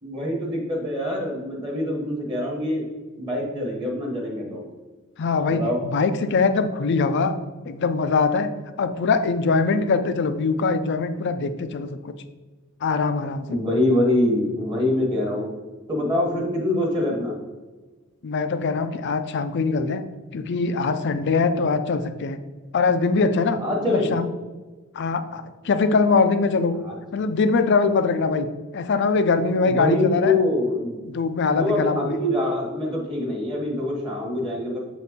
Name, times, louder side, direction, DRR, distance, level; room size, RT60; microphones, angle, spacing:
voice 1, 0.0-2.8 3.2-4.6 5.5-5.8 13.5-15.5 15.9-17.3 23.6-24.2 26.8-27.0 29.6-31.0 31.5-34.8, left 1 dB, 20° right, -1 dB, 1.1 m, -24 dB
voice 2, 5.2-7.3 7.7-12.1 12.8-13.6 18.2-20.0 20.3-22.4 22.7-23.6 23.8-24.3 24.9-26.7 27.1-28.5 28.7-30.4 31.1-32.2, left 4 dB, 50° left, 10 dB, 0.4 m, -22 dB
6.6 x 4.1 x 3.6 m, 1.3 s
head